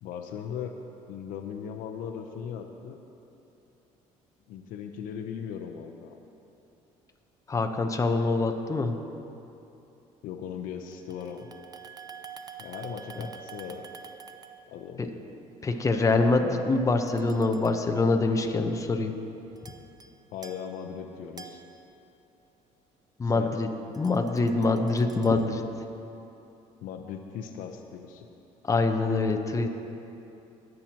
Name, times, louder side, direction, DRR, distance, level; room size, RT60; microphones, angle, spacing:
voice 1, 0.0-0.7 1.1-3.0 4.5-6.2 10.2-11.5 12.6-13.9 14.7-15.1 20.3-21.6 23.3-23.6 26.8-28.3, left 8 dB, 80° left, 5 dB, 0.7 m, -38 dB
voice 2, 7.5-9.0 13.2-13.3 15.0-15.1 15.6-19.1 23.2-23.7 24.0-25.6 28.6-29.7, left 3 dB, 25° left, 5 dB, 0.8 m, -25 dB
sound 1, 10.9-14.9 17.1-17.9 19.6-20.1 20.4-22.3 23.9-25.6, right 6 dB, 25° right, 0.6 m, -48 dB
21.0 x 7.7 x 2.9 m, 2.9 s
cardioid pair, 95°, 14 cm